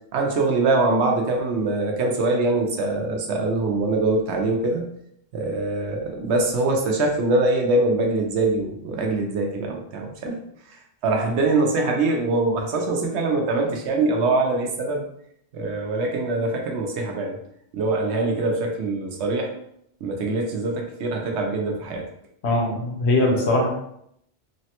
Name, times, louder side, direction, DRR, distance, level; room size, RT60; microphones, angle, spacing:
voice 1, 0.1-4.8 5.3-10.4 11.0-15.0 15.5-17.4 17.7-19.5 20.0-22.1 23.2-23.6, right 2 dB, 75° right, 1 dB, 0.8 m, -23 dB
voice 2, 22.4-23.7, left 2 dB, 70° left, 0 dB, 0.9 m, -21 dB
3.3 x 2.1 x 2.8 m, 0.73 s
omnidirectional pair, 1.2 m